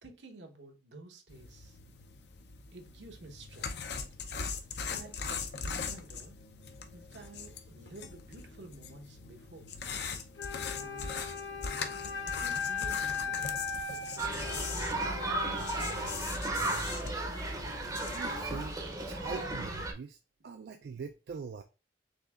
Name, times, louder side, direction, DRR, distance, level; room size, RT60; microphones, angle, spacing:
voice 1, 0.0-1.8 2.7-3.9 4.9-6.4 6.9-9.7 10.8-11.3 12.2-14.5, right 2 dB, 80° right, 1.0 m, -51 dB
sound 1, 1.3-18.2, left 5 dB, 65° left, 0.6 m, -41 dB
Wind instrument woodwind instrument, 10.4-16.3, left 6 dB, 85° left, 1.0 m, -38 dB
sound 2, 14.2-19.9, right 2 dB, 20° right, 0.6 m, -34 dB
voice 2, 15.4-17.0 18.1-20.2 20.4-21.6, right 5 dB, 60° right, 0.3 m, -44 dB
6.5 x 2.7 x 2.3 m
head